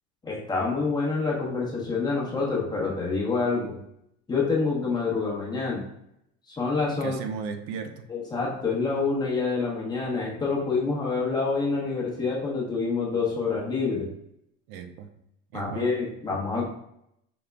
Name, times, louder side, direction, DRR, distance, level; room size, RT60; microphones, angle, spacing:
voice 1, 0.2-3.8 4.3-5.9 6.5-7.2 8.1-14.1 15.5-16.7, left 4 dB, 15° left, -4 dB, 1.0 m, -27 dB
voice 2, 6.9-8.1 14.7-15.1 15.5-15.9 16.3-16.4, right 6 dB, 80° right, 6 dB, 0.7 m, -36 dB
5.0 x 3.7 x 2.3 m, 0.77 s
cardioid pair, 150°, 30 cm